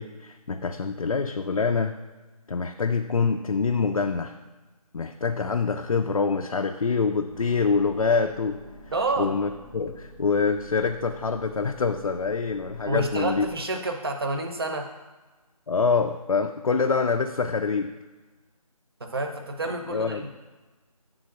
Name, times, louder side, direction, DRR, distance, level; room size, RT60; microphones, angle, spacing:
voice 1, 0.0-1.9 2.5-4.4 4.9-8.6 9.2-13.5 15.7-17.9 19.9-20.2, left 5 dB, 60° left, 4 dB, 0.5 m, -25 dB
sound 1, 7.3-13.6, left 1 dB, 5° right, 0.5 m, -47 dB
voice 2, 8.9-9.3 12.8-14.9 19.0-20.3, right 2 dB, 40° right, 4 dB, 0.8 m, -29 dB
7.8 x 3.8 x 5.8 m, 1.2 s
figure-of-eight pair, 165°, 20 cm